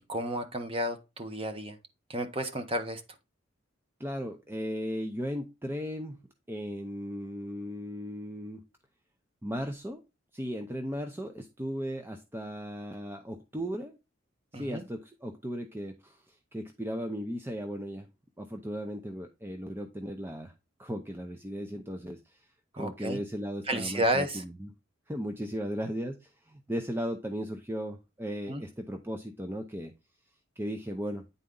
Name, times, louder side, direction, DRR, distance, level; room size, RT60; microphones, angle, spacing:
voice 1, 0.0-1.8 2.1-3.0 14.5-14.8 22.8-23.2 23.7-24.4 28.5-28.6, right 1 dB, 30° right, 1.0 m, -31 dB
voice 2, 4.0-6.2 6.5-8.6 9.4-10.0 10.3-14.0 14.5-18.1 18.4-20.5 20.8-22.5 22.7-24.7 25.1-29.9 30.6-31.2, equal, 10° right, 0.6 m, -36 dB
9.5 x 4.1 x 3.8 m
head